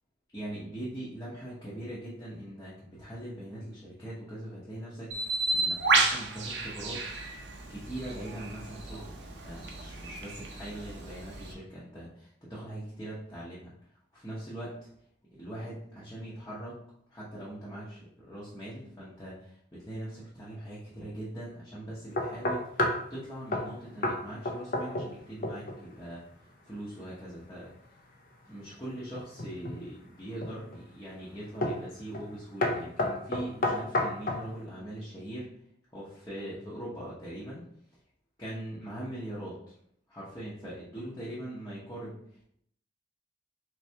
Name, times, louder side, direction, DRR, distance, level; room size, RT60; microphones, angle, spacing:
voice 1, 0.3-7.1 7.7-13.7 14.1-14.9 15.3-16.8 17.1-27.7 28.4-35.5 35.9-37.6 38.4-39.7 40.1-42.4, right 1 dB, 15° left, -9 dB, 0.8 m, -41 dB
Bird, 5.1-11.5, right 3 dB, 75° right, 0.7 m, -32 dB
sound 1, 22.2-23.1 23.5-23.7 24.0-24.2 24.4-25.2 25.4-25.8 29.1-29.8 30.4-30.8 31.6-31.9 32.1-32.3 32.6-34.5, left 1 dB, 50° left, 0.5 m, -30 dB
3.9 x 3.3 x 2.8 m, 0.69 s
head